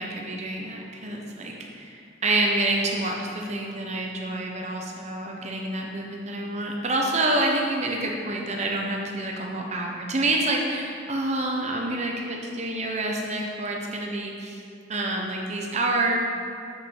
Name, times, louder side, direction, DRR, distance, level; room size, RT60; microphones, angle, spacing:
voice 1, 0.0-14.6 14.9-16.2, right 2 dB, 35° right, 0 dB, 0.9 m, -27 dB
7.2 x 6.9 x 3.8 m, 2.4 s
head